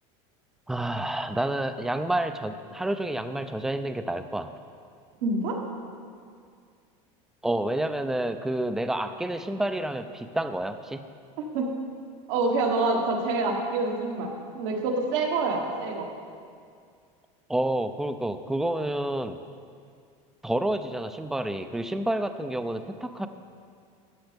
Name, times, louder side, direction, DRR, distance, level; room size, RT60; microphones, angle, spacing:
voice 1, 0.7-4.5 7.4-11.0 17.5-19.4 20.4-23.3, right 1 dB, 5° right, 9 dB, 0.4 m, -29 dB
voice 2, 5.2-5.6 11.5-11.7 12.3-16.1, right 3 dB, 75° right, 1 dB, 1.5 m, -26 dB
13.5 x 8.5 x 3.5 m, 2.3 s
supercardioid pair, 140°, 16 cm